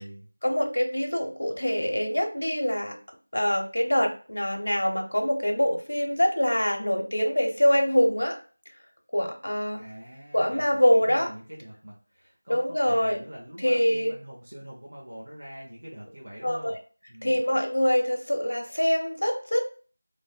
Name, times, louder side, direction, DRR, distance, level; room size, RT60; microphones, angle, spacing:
voice 1, 0.4-3.0 3.3-8.4 9.1-9.8 10.3-11.3 12.5-13.2 13.6-14.1 16.4-16.8 17.2-19.6, equal, 85° left, 2 dB, 0.7 m, -24 dB
voice 2, 9.8-16.8 17.1-17.4, equal, 65° right, -4 dB, 0.8 m, -44 dB
3.3 x 2.1 x 2.2 m, 0.39 s
figure-of-eight pair, 180°, 0 cm